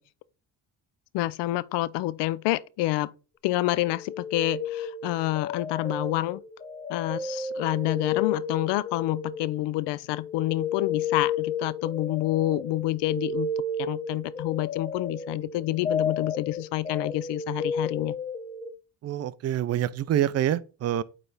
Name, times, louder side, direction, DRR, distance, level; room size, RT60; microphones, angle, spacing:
voice 1, 1.1-3.1 3.4-6.4 6.9-13.5 13.8-18.1, left 17 dB, 80° left, 0.6 m, -28 dB
sound 1, 3.9-9.8 10.1-18.7, left 4 dB, 15° left, 0.8 m, -32 dB
voice 2, 19.0-21.0, right 11 dB, 40° right, 0.5 m, -26 dB
8.9 x 3.3 x 4.0 m
cardioid pair, 110°, 41 cm